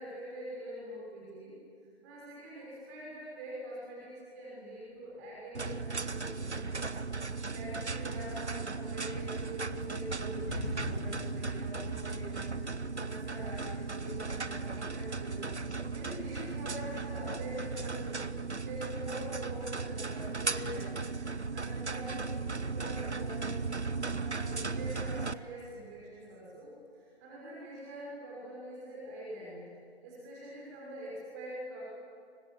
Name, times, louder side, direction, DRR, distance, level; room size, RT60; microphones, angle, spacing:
voice 1, 0.0-1.5 2.0-6.9 7.5-12.5 12.9-15.6 15.9-20.9 21.5-23.6 24.1-29.6 30.0-31.8, right 1 dB, 15° right, -5 dB, 5.8 m, -44 dB
sound 1, 5.5-25.3, right 4 dB, 85° right, 1.2 m, -36 dB
sound 2, 9.2-17.9, left 1 dB, 25° left, 6.2 m, -45 dB
30.0 x 24.5 x 7.6 m, 2.3 s
figure-of-eight pair, 155°, 34 cm